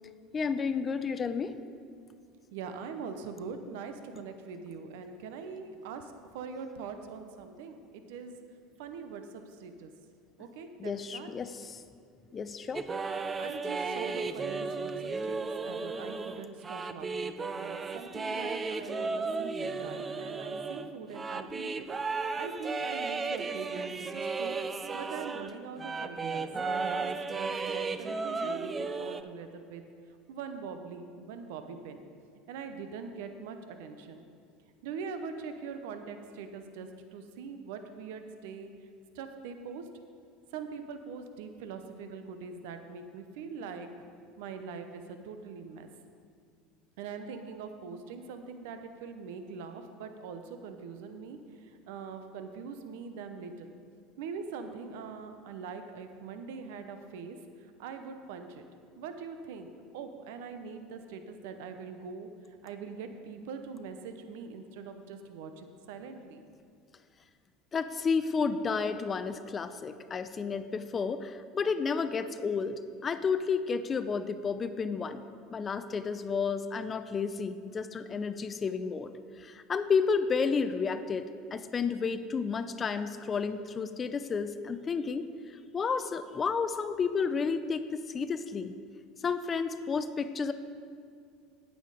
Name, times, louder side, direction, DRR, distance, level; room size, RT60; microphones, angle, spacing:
voice 1, 0.3-1.6 10.8-11.8 12.3-12.8 67.7-75.2 75.5-79.1 79.4-85.3 85.7-88.7 89.2-90.5, left 5 dB, 30° left, 11 dB, 0.5 m, -31 dB
voice 2, 2.5-8.3 8.8-9.9 10.4-11.3 13.4-14.9 15.2-21.9 22.4-24.5 24.9-29.8 30.3-32.0 32.5-34.2 34.8-38.7 39.1-39.8 40.5-43.9 44.4-45.9 47.0-53.7 54.2-57.4 57.8-58.6 59.0-62.3 62.6-66.4, right 5 dB, 75° right, 7 dB, 0.7 m, -42 dB
sound 1, 12.7-25.5 25.8-29.2, right 4 dB, 25° right, 0.5 m, -34 dB
9.0 x 8.6 x 4.9 m, 2.3 s
hypercardioid pair, 85°, 0 cm